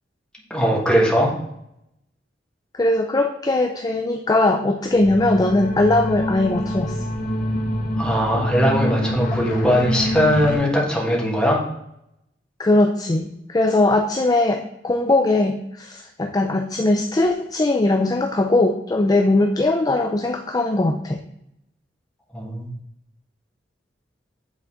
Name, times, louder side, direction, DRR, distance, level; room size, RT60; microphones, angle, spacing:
voice 1, 0.5-1.3 8.0-11.6 22.3-22.7, equal, 5° left, -3 dB, 1.4 m, -20 dB
voice 2, 2.7-7.0 12.6-21.2, left 2 dB, 20° left, 3 dB, 0.4 m, -20 dB
sound 1, 4.9-10.6, equal, 50° left, 0.9 m, -26 dB
8.3 x 3.9 x 3.6 m, 0.80 s
head